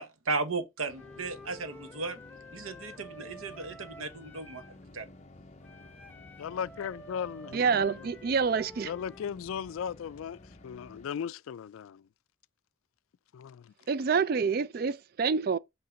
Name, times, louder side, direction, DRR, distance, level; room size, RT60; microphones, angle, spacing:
voice 1, 0.0-2.2 2.5-4.6 4.9-5.1, right 3 dB, 90° right, 0.9 m, -35 dB
sound 1, 0.9-11.1, left 2 dB, 35° left, 0.6 m, -53 dB
Wind instrument woodwind instrument, 1.0-4.8 5.6-9.3, equal, 10° left, 1.1 m, -50 dB
voice 2, 6.4-8.1 8.8-10.4 10.6-12.0 13.3-13.7, left 7 dB, 80° left, 0.3 m, -37 dB
voice 3, 7.5-8.9 13.9-15.6, right 5 dB, 45° right, 0.3 m, -27 dB
5.7 x 3.2 x 5.2 m
head